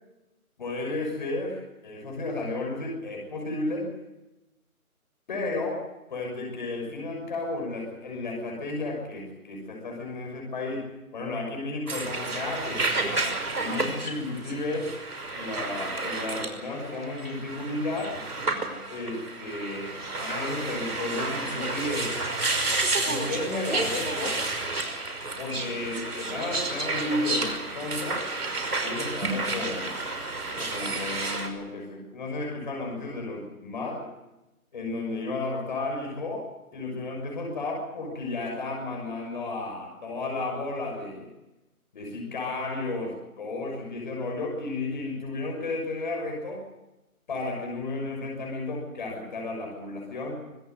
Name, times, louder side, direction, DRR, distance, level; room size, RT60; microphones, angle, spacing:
voice 1, 0.6-3.9 5.3-5.8 6.1-10.9 11.1-12.8 13.5-14.9 15.3-18.2 18.9-19.9 20.2-22.1 23.0-24.4 25.4-28.3 28.8-30.0 30.6-34.0 34.7-36.4 36.7-41.3 41.9-46.6 47.3-50.4, left 2 dB, 30° left, 0 dB, 6.5 m, -33 dB
sound 1, 11.9-31.5, right 3 dB, 90° right, 5.6 m, -31 dB
25.0 x 18.0 x 7.9 m, 0.99 s
figure-of-eight pair, 170°, 44 cm